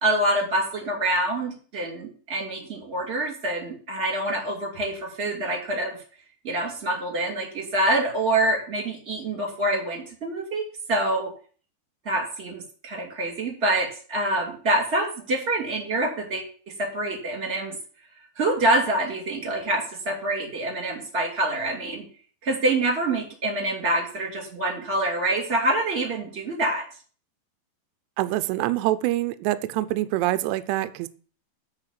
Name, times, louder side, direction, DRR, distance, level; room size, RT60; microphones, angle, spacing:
voice 1, 0.0-6.0 6.4-11.3 12.0-16.4 16.8-17.8 18.4-22.1 22.4-26.8, right 1 dB, 20° right, 1 dB, 1.8 m, -26 dB
voice 2, 28.2-31.1, right 16 dB, 80° right, 12 dB, 2.5 m, -25 dB
9.7 x 4.5 x 6.7 m, 0.42 s
omnidirectional pair, 5.4 m